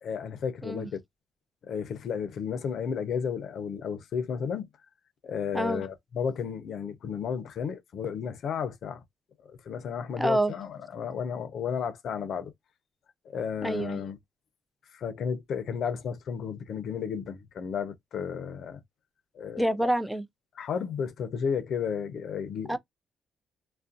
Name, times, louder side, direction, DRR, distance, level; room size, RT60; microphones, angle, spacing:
voice 1, 0.0-1.0 1.7-4.7 5.2-9.0 9.4-12.5 13.3-14.2 14.9-18.8 19.3-19.9 20.6-22.8, left 7 dB, 65° left, 0.5 m, -33 dB
voice 2, 10.2-10.5 13.6-14.0 19.6-20.3 22.7-22.8, right 1 dB, ahead, 0.4 m, -27 dB
2.5 x 2.1 x 2.4 m
cardioid pair, 90°, 0 cm